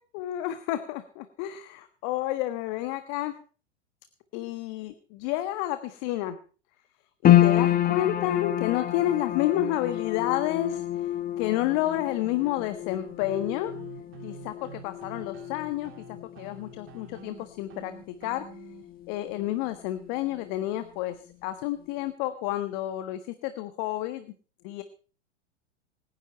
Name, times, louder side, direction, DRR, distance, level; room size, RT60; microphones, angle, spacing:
voice 1, 0.1-3.3 4.3-6.4 7.2-13.7 14.2-15.9 16.4-17.9 18.2-18.4 19.1-21.2 21.4-24.3 24.6-24.8, left 14 dB, 45° left, 10 dB, 1.4 m, -30 dB
sound 1, 7.2-19.7 19.9-20.9 21.3-21.4, left 12 dB, 25° left, 1.4 m, -28 dB
sound 2, 11.4-18.8, right 8 dB, 35° right, 3.0 m, -48 dB
25.5 x 10.5 x 4.5 m, 0.39 s
figure-of-eight pair, 100°, 36 cm